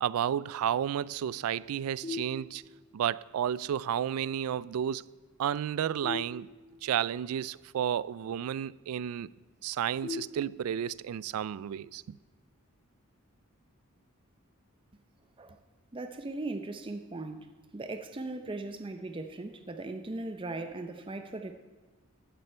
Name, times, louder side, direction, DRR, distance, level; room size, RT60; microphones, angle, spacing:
voice 1, 0.0-2.6 2.9-5.0 5.4-6.5 6.8-9.3 9.6-12.2, right 9 dB, 90° right, 0.3 m, -32 dB
sound 1, 2.0-3.0 6.0-7.0 10.0-11.0, left 4 dB, 30° left, 2.1 m, -41 dB
voice 2, 15.9-21.5, right 2 dB, 25° right, 0.6 m, -38 dB
15.0 x 11.0 x 4.4 m
head